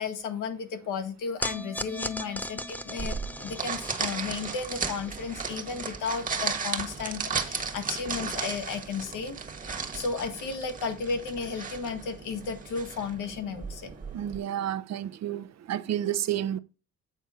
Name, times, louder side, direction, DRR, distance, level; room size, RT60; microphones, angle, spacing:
voice 1, 0.0-9.4 9.8-13.9, left 5 dB, 85° left, 1.5 m, -34 dB
sound 1, 1.4-7.8, left 1 dB, 5° left, 0.7 m, -39 dB
sound 2, 3.0-14.4, right 5 dB, 25° right, 1.3 m, -35 dB
voice 2, 14.1-16.6, right 11 dB, 60° right, 0.6 m, -30 dB
8.4 x 4.2 x 4.9 m
cardioid pair, 90°, 30 cm